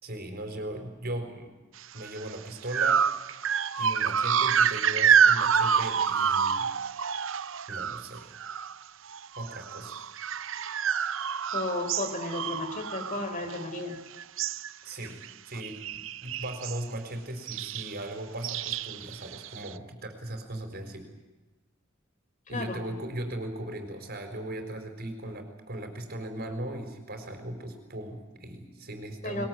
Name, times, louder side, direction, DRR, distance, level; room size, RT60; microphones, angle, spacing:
voice 1, 0.0-1.5 1.9-3.0 3.8-6.7 7.7-8.3 9.4-10.0 14.8-15.2 15.5-21.1 22.5-29.5, right 1 dB, 50° right, 6 dB, 4.5 m, -38 dB
sound 1, 2.0-2.2 2.7-8.8 9.1-13.9 14.2-14.7 15.0-15.3 15.6-16.8 17.5-18.0 18.4-19.7, right 7 dB, 65° right, 0.8 m, -27 dB
voice 2, 11.5-14.0 22.5-22.8 29.2-29.5, left 2 dB, 40° left, 6 dB, 4.1 m, -33 dB
21.5 x 21.0 x 9.3 m, 1.1 s
head